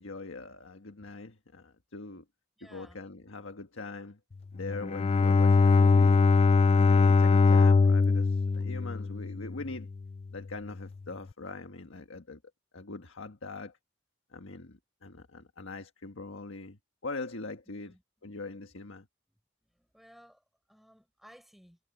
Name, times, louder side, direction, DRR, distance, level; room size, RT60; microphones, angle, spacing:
voice 1, 0.0-2.2 2.6-4.2 4.5-6.3 6.7-9.9 10.3-12.4 12.7-13.8 14.3-17.9 18.2-19.1, left 3 dB, 85° left, 1.5 m, -42 dB
voice 2, 2.6-3.0 17.7-18.0 19.7-20.4 20.7-21.8, equal, ahead, 6.6 m, -57 dB
Bowed string instrument, 4.6-9.8, left 4 dB, 30° left, 0.3 m, -22 dB
head